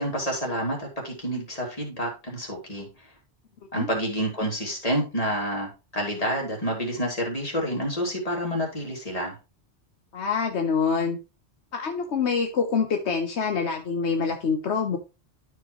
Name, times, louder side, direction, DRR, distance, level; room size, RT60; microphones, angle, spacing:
voice 1, 0.0-2.9 3.7-9.3, equal, 35° left, -2 dB, 2.9 m, -28 dB
voice 2, 10.1-11.2 11.7-15.0, left 5 dB, 75° left, 4 dB, 1.2 m, -25 dB
12.5 x 4.8 x 3.1 m, 0.29 s
omnidirectional pair, 1.1 m